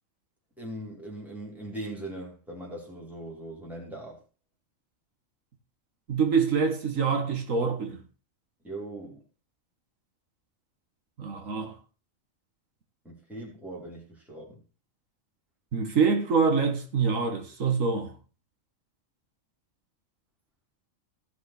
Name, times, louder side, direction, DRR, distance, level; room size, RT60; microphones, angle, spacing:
voice 1, 0.6-4.2 8.6-9.2 13.0-14.6, right 1 dB, ahead, 3.3 m, -40 dB
voice 2, 6.1-8.0 11.2-11.7 15.7-18.1, right 5 dB, 80° right, 1.9 m, -25 dB
15.5 x 6.2 x 4.3 m
omnidirectional pair, 1.3 m